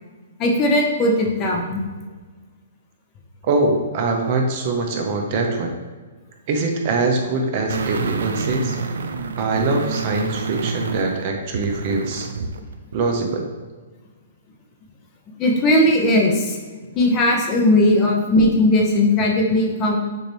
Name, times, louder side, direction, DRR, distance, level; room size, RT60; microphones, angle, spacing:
voice 1, 0.4-1.8 15.4-16.6 16.9-20.0, left 1 dB, 25° left, 0 dB, 0.7 m, -18 dB
voice 2, 3.4-5.7 6.5-8.8 9.4-12.3 12.9-13.5, right 3 dB, 40° right, 3 dB, 0.7 m, -23 dB
sound 1, 7.7-12.6 12.9-13.0, right 5 dB, 85° right, 0.4 m, -28 dB
6.5 x 2.7 x 3.1 m, 1.4 s
hypercardioid pair, 150°, 0 cm